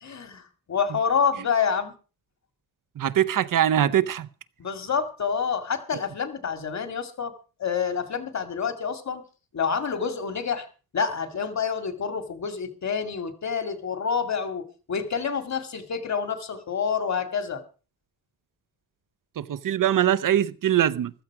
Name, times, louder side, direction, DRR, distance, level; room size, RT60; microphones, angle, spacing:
voice 1, 0.0-0.4 0.7-1.9 4.6-7.3 7.6-9.2 9.5-10.7 10.9-17.6, left 6 dB, 45° left, 2.3 m, -28 dB
voice 2, 3.0-4.3 19.4-21.1, right 11 dB, 60° right, 0.7 m, -22 dB
15.0 x 13.5 x 4.8 m
wide cardioid pair, 160°, 37 cm